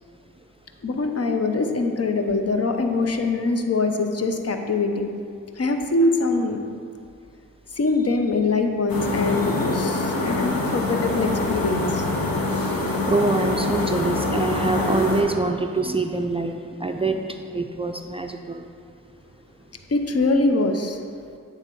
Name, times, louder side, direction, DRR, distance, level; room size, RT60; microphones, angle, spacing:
voice 1, 0.8-5.1 5.6-6.6 7.7-12.1 19.9-21.0, left 3 dB, 45° left, 5 dB, 0.7 m, -23 dB
sound 1, 8.9-15.2, left 2 dB, 85° left, 1.0 m, -25 dB
voice 2, 12.4-18.7, right 2 dB, 15° right, 4 dB, 0.4 m, -25 dB
8.8 x 3.5 x 4.5 m, 2.3 s
cardioid pair, 45°, 34 cm